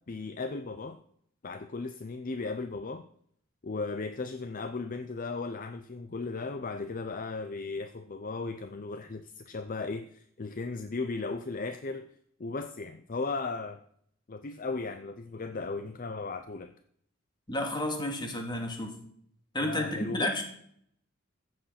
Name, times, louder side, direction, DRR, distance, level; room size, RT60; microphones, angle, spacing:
voice 1, 0.1-1.0 1.4-3.0 3.6-12.1 12.4-13.8 14.3-16.7 19.6-20.3, left 3 dB, 45° left, 9 dB, 0.6 m, -36 dB
voice 2, 17.5-18.9 19.5-20.4, left 1 dB, 25° left, 3 dB, 2.3 m, -31 dB
14.5 x 7.9 x 5.8 m, 0.66 s
head